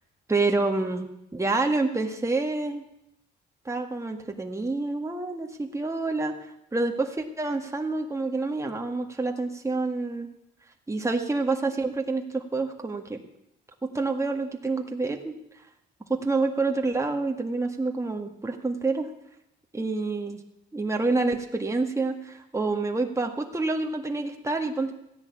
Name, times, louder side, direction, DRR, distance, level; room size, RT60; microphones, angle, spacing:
voice 1, 0.3-2.8 3.7-10.3 10.9-13.2 13.9-15.4 16.1-19.1 19.7-20.4 20.7-24.9, right 3 dB, 15° right, 3 dB, 1.9 m, -28 dB
15.0 x 10.5 x 8.5 m, 0.84 s
cardioid pair, 90°, 20 cm